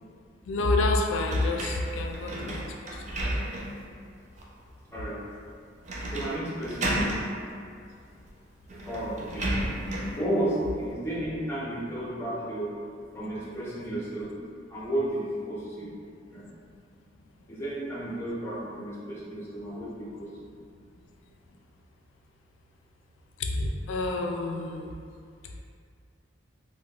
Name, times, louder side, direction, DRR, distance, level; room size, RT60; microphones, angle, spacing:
voice 1, 0.4-3.0 23.4-24.9, left 2 dB, 85° left, 2 dB, 0.3 m, -28 dB
sound 1, 1.3-3.9 4.4-4.5 5.9-6.4 6.6-7.3 8.3-8.4 8.7-10.2, right 1 dB, 35° right, 0.4 m, -32 dB
voice 2, 4.9-5.2 6.1-7.1 8.7-9.5 10.2-12.8 13.1-14.3 14.7-15.9 16.3-16.4 17.5-20.3, right 1 dB, 15° left, -7 dB, 0.6 m, -32 dB
3.5 x 2.1 x 2.3 m, 2.3 s
head